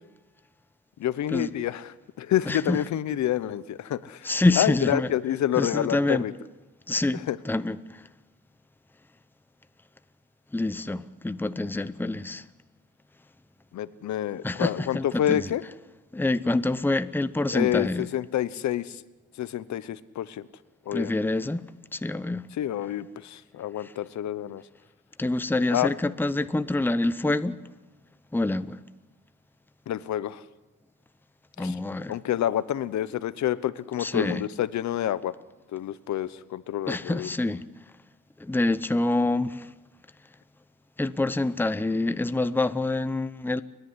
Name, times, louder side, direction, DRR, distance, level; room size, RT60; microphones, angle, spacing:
voice 1, 1.0-6.3 7.1-7.4 13.7-15.6 17.5-19.0 19.4-20.5 20.9-21.2 22.6-24.6 25.7-25.9 29.9-30.4 31.6-31.7 32.1-35.3 35.7-37.3, left 11 dB, 65° left, 0.9 m, -28 dB
voice 2, 2.5-2.8 4.2-5.1 5.6-6.2 6.9-8.1 10.5-12.5 14.4-15.5 16.1-18.1 20.9-22.5 23.8-23.9 25.2-27.6 28.3-28.8 31.6-32.1 34.0-34.4 36.9-37.6 38.4-39.7 41.0-43.6, left 2 dB, 5° left, 0.8 m, -26 dB
30.0 x 10.5 x 9.8 m
cardioid pair, 90°, 30 cm